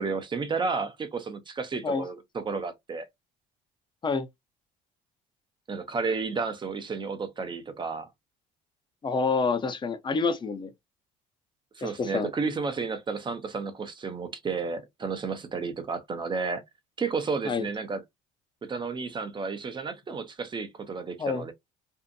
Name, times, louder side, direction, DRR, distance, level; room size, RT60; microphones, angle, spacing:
voice 1, 0.0-3.1 5.7-8.1 11.8-16.6 17.0-18.0 18.6-21.5, right 4 dB, 30° right, 0.7 m, -32 dB
voice 2, 9.0-10.7 11.8-12.3 17.5-17.7 21.2-21.4, left 4 dB, 30° left, 0.7 m, -27 dB
2.7 x 2.4 x 2.2 m
supercardioid pair, 80°, 17 cm